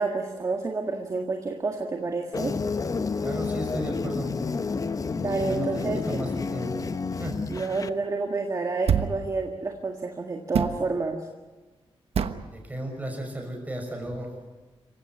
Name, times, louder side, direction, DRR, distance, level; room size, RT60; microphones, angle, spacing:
voice 1, 0.0-2.5 5.2-6.0 7.5-11.3, right 3 dB, 35° right, 3 dB, 1.8 m, -29 dB
sound 1, 2.3-7.9, left 4 dB, 35° left, 0.9 m, -30 dB
voice 2, 3.2-4.3 5.3-6.9 7.2-7.7 12.5-14.3, right 1 dB, 15° right, 2 dB, 6.2 m, -35 dB
sound 2, 8.9-9.3 10.5-10.8 12.1-12.5, right 7 dB, 85° right, 1.2 m, -25 dB
27.0 x 16.0 x 9.6 m, 1.3 s
wide cardioid pair, 145°, 10 cm